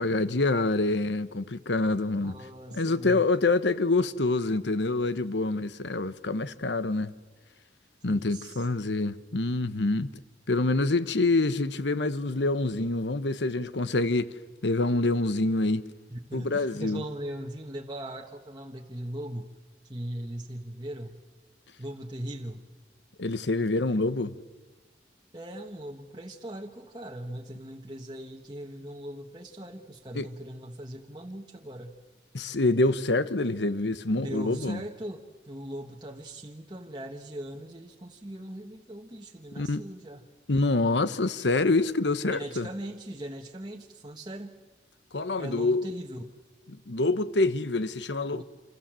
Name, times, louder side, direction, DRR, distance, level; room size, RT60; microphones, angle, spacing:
voice 1, 0.0-2.4 2.7-7.1 8.0-10.2 10.5-14.3 14.6-15.8 16.3-17.0 23.2-24.3 30.1-30.3 32.3-34.8 39.6-39.8 40.5-42.7 45.1-45.9 46.9-48.4, left 2 dB, 85° left, 1.1 m, -26 dB
voice 2, 1.9-3.2 8.1-8.7 16.1-19.5 19.8-21.2 21.8-22.6 25.3-32.0 34.2-40.2 42.3-44.6 45.4-46.3 48.3-48.4, right 1 dB, 25° right, 1.4 m, -39 dB
27.5 x 27.5 x 7.6 m
head